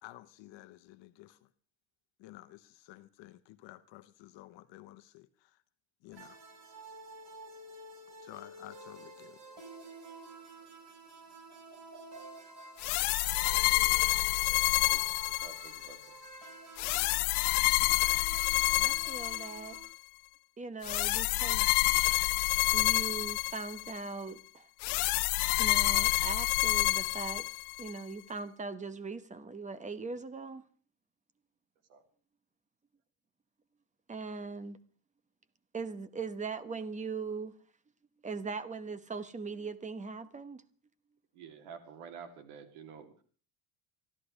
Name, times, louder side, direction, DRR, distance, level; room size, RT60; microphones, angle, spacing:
voice 1, 0.0-1.5 2.2-5.6 6.0-6.4 8.2-9.4, left 16 dB, 65° left, 1.0 m, -52 dB
sound 1, 6.1-19.8, right 2 dB, 60° right, 5.0 m, -50 dB
sound 2, 12.8-16.0 16.8-19.9 20.8-24.0 24.8-27.9, left 23 dB, 90° left, 0.6 m, -28 dB
voice 2, 14.5-15.1 15.4-16.1 31.9-32.0 41.3-43.2, right 6 dB, 85° right, 2.9 m, -50 dB
voice 3, 18.7-19.8 20.6-21.7 22.7-24.7 25.6-27.5 27.8-30.6 34.1-34.8 35.7-37.5 38.2-40.6, right 4 dB, 15° right, 0.9 m, -40 dB
26.0 x 13.0 x 3.3 m
cardioid pair, 145°, 47 cm